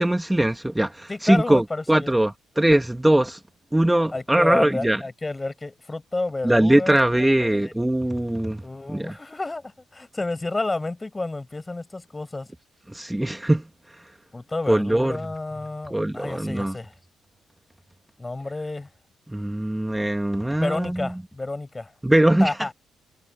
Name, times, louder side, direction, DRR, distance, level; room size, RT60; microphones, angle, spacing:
voice 1, 0.0-3.4 3.7-5.0 6.4-8.6 8.9-9.1 12.9-13.6 14.7-15.2 15.9-16.8 19.3-21.1 22.0-22.5, right 1 dB, 10° right, 2.1 m, -21 dB
voice 2, 1.1-2.2 4.1-7.8 8.6-12.5 14.3-16.9 18.2-18.9 20.6-21.9 22.4-22.7, left 2 dB, 20° left, 7.3 m, -30 dB
cardioid pair, 90°, 0 cm